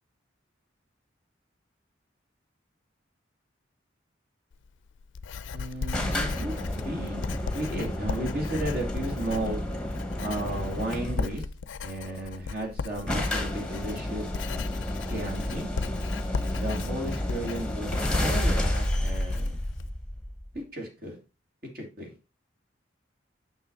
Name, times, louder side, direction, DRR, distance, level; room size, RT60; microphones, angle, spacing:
Writing, 4.5-19.9, left 5 dB, 75° left, 0.4 m, -38 dB
voice 1, 5.5-7.2 7.5-9.6 10.2-11.4 11.8-14.3 15.1-15.7 16.5-17.9 18.2-19.6 20.7-21.2 21.7-22.1, right 1 dB, 50° right, 0 dB, 2.6 m, -34 dB
sound 1, 5.9-11.4 12.4-12.5 12.7-12.8 13.1-20.6, left 1 dB, 5° left, 1.2 m, -31 dB
6.4 x 5.7 x 4.0 m, 0.30 s
head